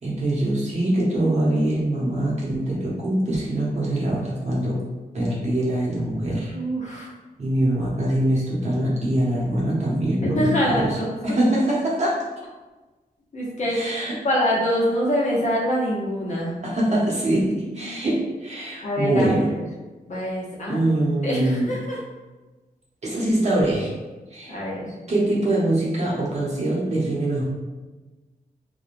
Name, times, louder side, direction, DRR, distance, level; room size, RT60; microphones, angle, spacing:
voice 1, 0.0-4.8 5.1-6.5 7.4-11.0 11.2-12.2 13.7-14.1 16.6-19.5 20.7-21.7 23.0-23.9 24.3-24.6 25.1-27.4, right 1 dB, 45° right, -6 dB, 0.8 m, -23 dB
voice 2, 6.5-7.1 10.3-11.1 13.3-13.8 14.2-16.7 17.8-18.0 18.8-19.6 20.1-20.8 21.2-22.0 24.5-24.9, equal, 50° left, -5 dB, 0.8 m, -25 dB
3.0 x 2.2 x 2.5 m, 1.2 s
wide cardioid pair, 150°, 16 cm